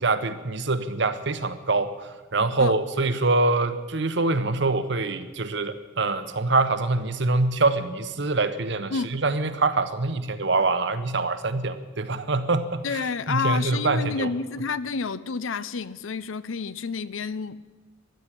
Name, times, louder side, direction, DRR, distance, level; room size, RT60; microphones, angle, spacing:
voice 1, 0.0-13.0 13.3-14.3, right 3 dB, 60° right, 1.1 m, -25 dB
voice 2, 12.8-17.6, left 5 dB, 90° left, 0.6 m, -29 dB
13.5 x 10.5 x 9.9 m
head